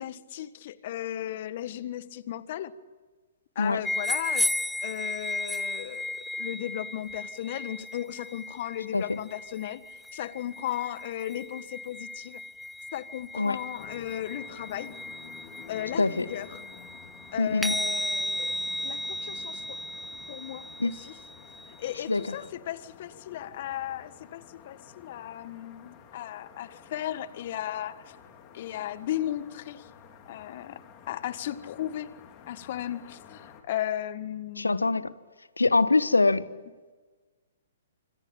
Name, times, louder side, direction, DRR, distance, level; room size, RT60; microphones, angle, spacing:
voice 1, 0.0-2.7 3.5-4.5 4.8-9.8 10.1-12.4 12.9-15.0 15.7-16.6 17.3-19.8 20.3-21.2 21.8-28.2 28.5-29.9 30.3-32.1 32.5-35.1, left 12 dB, 50° left, 14 dB, 1.5 m, -36 dB
sound 1, 3.8-22.3, left 1 dB, ahead, 0.8 m, -35 dB
sound 2, 13.8-33.6, left 7 dB, 30° left, 3.7 m, -51 dB
voice 2, 17.4-17.7 20.8-20.9 22.1-22.2 34.6-35.0 35.6-36.4, left 3 dB, 85° left, 15 dB, 1.3 m, -23 dB
27.0 x 25.0 x 8.8 m, 1.3 s
figure-of-eight pair, 125°, 0 cm